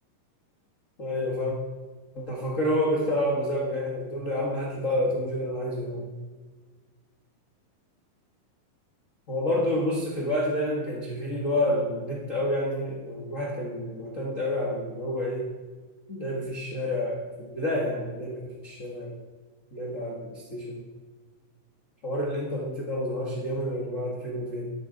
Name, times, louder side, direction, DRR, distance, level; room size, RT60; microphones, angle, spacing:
voice 1, 1.0-1.6 2.1-6.1 9.3-15.5 16.1-19.1 19.7-20.9 22.0-24.7, left 1 dB, 90° left, -4 dB, 0.7 m, -29 dB
12.0 x 11.0 x 3.9 m, 1.4 s
omnidirectional pair, 4.3 m